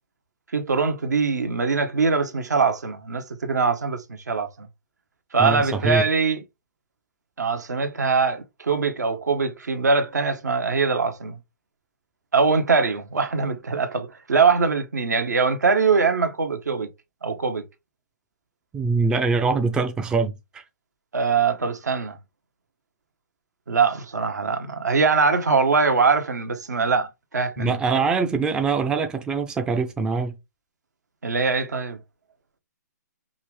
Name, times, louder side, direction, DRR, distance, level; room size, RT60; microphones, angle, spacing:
voice 1, 0.5-4.7 5.3-6.4 7.4-11.4 12.3-16.9 17.2-17.6 21.1-22.2 23.7-27.8 31.2-32.0, right 4 dB, 75° right, 1.1 m, -22 dB
voice 2, 5.4-6.0 18.7-20.6 27.6-30.4, right 4 dB, 10° right, 0.4 m, -23 dB
5.6 x 2.5 x 3.2 m
figure-of-eight pair, 135°, 9 cm